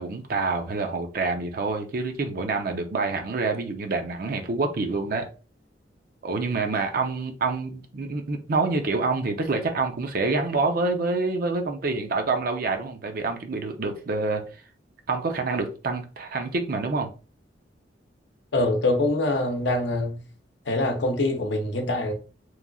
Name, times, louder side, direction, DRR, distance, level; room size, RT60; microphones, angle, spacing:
voice 1, 0.0-5.3 6.2-14.4 15.1-17.1, right 3 dB, 55° right, 0.5 m, -27 dB
voice 2, 18.5-20.2 20.7-22.1, left 2 dB, 70° left, 0.7 m, -24 dB
3.0 x 2.4 x 2.2 m
head